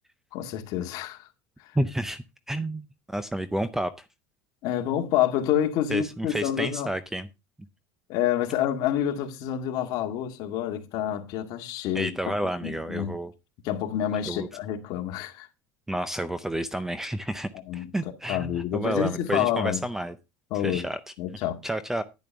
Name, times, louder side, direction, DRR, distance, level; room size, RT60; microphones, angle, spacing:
voice 1, 0.3-1.2 4.6-6.9 8.1-12.1 12.6-13.1 13.6-15.5 17.7-17.9 18.3-19.8 20.5-20.9 21.2-21.6, left 10 dB, 50° left, 2.0 m, -28 dB
voice 2, 1.8-2.8 3.1-4.1 5.9-7.3 11.9-13.3 14.3-14.5 15.9-20.2 20.6-21.1 21.6-22.0, right 1 dB, 5° right, 0.5 m, -30 dB
10.5 x 10.5 x 3.4 m
cardioid pair, 160°, 8 cm